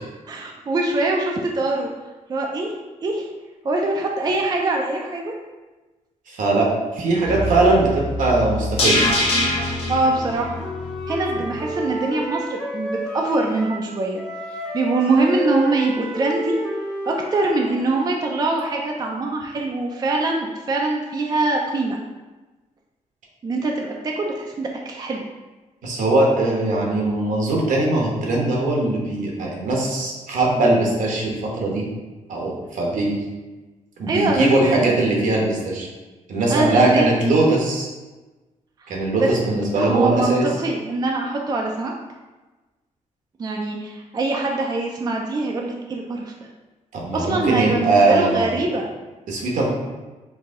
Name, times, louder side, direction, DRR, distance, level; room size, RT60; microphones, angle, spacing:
voice 1, 0.3-1.9 2.3-2.7 3.0-3.3 3.6-5.4 9.9-10.5 11.1-14.2 14.7-16.6 17.0-22.0 23.4-25.2 34.1-35.0 36.5-37.1 39.2-39.3 39.8-41.9 43.4-46.3 47.1-48.9, right 2 dB, 30° right, 0 dB, 0.4 m, -23 dB
voice 2, 6.3-9.1 25.8-31.8 32.3-33.2 34.0-35.9 36.3-37.9 38.9-40.5 46.9-48.6 49.3-49.7, right 2 dB, 75° right, -1 dB, 1.1 m, -20 dB
sound 1, 7.3-11.5 11.8-11.9, left 1 dB, 45° left, 1.0 m, -24 dB
Wind instrument woodwind instrument, 10.1-13.9 14.2-18.2, equal, 5° left, 0.7 m, -31 dB
4.7 x 2.7 x 3.7 m, 1.2 s
wide cardioid pair, 135°, 13 cm